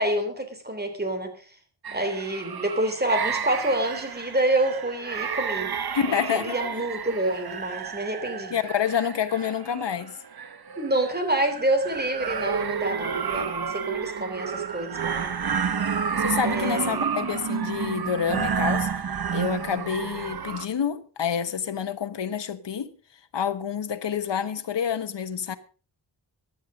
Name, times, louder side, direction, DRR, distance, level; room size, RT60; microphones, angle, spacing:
voice 1, 0.0-1.3 1.9-5.7 6.0-8.6 10.8-15.3 16.4-17.1, right 1 dB, 20° right, 3.3 m, -27 dB
sound 1, 1.8-20.7, right 6 dB, 55° right, 1.1 m, -30 dB
voice 2, 5.9-6.6 8.5-10.2 16.2-18.9 19.3-22.9 23.3-25.6, left 8 dB, 70° left, 1.2 m, -28 dB
16.0 x 11.0 x 5.1 m
wide cardioid pair, 135°, 44 cm